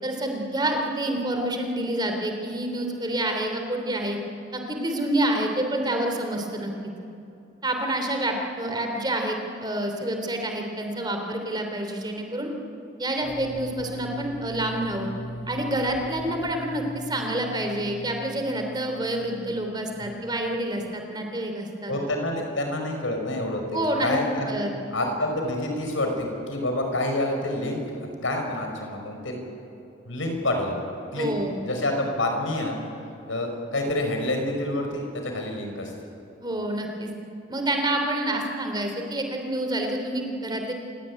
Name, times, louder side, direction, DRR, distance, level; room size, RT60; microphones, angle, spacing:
voice 1, 0.0-4.2 4.5-6.9 7.6-12.5 13.0-15.1 15.5-21.9 23.7-24.2 24.5-24.7 31.1-31.6 36.4-37.1 37.5-40.7, right 1 dB, 20° right, 3 dB, 3.1 m, -28 dB
sound 1, 13.2-20.9, equal, 40° left, 2.9 m, -41 dB
voice 2, 21.9-24.6 24.9-28.0 28.2-29.4 30.1-30.8 31.1-31.3 31.6-32.8 33.3-35.9, left 1 dB, 80° left, 3 dB, 5.5 m, -28 dB
27.5 x 17.5 x 9.8 m, 2.7 s
head